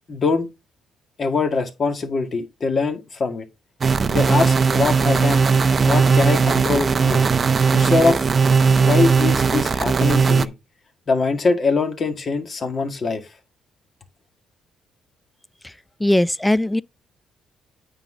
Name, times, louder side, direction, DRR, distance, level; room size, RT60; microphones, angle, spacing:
voice 1, 0.1-0.5 1.2-3.5 4.0-5.4 5.8-7.2 7.7-8.3 8.8-10.5 11.1-13.3, left 4 dB, 40° left, 1.8 m, -22 dB
sound 1, 3.8-10.5, right 5 dB, 35° right, 0.6 m, -18 dB
voice 2, 16.0-16.8, left 1 dB, 5° left, 0.3 m, -19 dB
9.0 x 3.9 x 4.9 m
cardioid pair, 105°, 0 cm